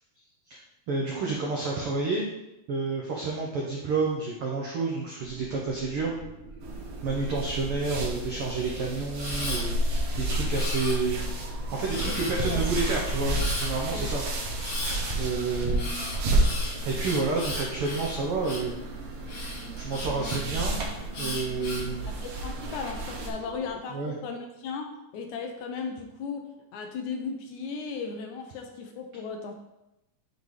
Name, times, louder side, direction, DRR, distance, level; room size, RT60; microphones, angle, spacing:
voice 1, 0.9-2.3 2.7-6.1 7.0-9.8 10.2-11.2 11.7-14.2 15.2-16.2 16.8-18.7 19.8-20.8 21.2-22.1 23.9-24.1, right 3 dB, 80° right, -2 dB, 1.2 m, -29 dB
sound 1, 5.2-23.8, right 1 dB, 35° right, 1.9 m, -46 dB
sound 2, 6.6-23.3, right 1 dB, 65° right, 1.9 m, -31 dB
Camera, 9.2-9.6 10.5-11.3 11.9-12.5 13.3-13.7 14.6-15.0 15.7-18.7 19.3-20.4 21.1-21.9 22.5-23.0, left 2 dB, 50° left, 2.5 m, -36 dB
voice 2, 12.0-12.7 13.9-14.1 22.1-24.9 25.1-29.5, left 5 dB, 75° left, 4 dB, 1.8 m, -36 dB
9.1 x 4.0 x 3.2 m, 0.92 s
omnidirectional pair, 3.7 m